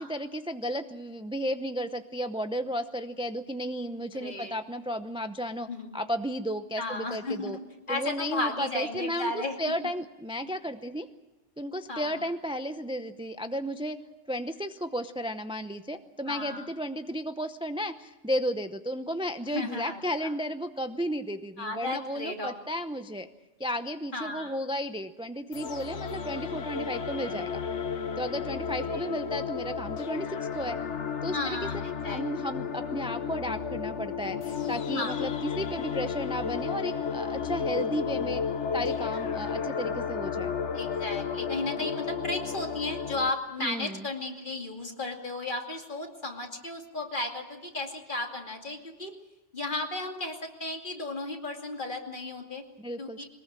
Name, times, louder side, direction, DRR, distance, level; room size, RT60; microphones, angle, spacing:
voice 1, 0.0-5.7 5.9-7.6 7.9-11.1 11.6-14.0 14.3-23.3 23.6-27.5 28.2-30.8 31.2-31.7 32.0-38.4 38.7-40.5 43.6-44.1 52.8-53.2, equal, 5° right, 9 dB, 0.6 m, -33 dB
voice 2, 4.1-4.5 5.7-5.9 6.8-7.6 7.9-9.6 11.9-12.2 16.3-16.7 19.5-20.3 21.6-22.5 24.1-24.6 28.8-29.0 31.3-32.2 34.9-35.2 40.7-49.1 49.5-52.6 53.0-53.2, left 2 dB, 45° left, 2 dB, 2.7 m, -34 dB
sound 1, 25.5-43.3, left 6 dB, 70° left, 1.4 m, -33 dB
22.5 x 20.0 x 7.6 m, 1.1 s
omnidirectional pair, 1.2 m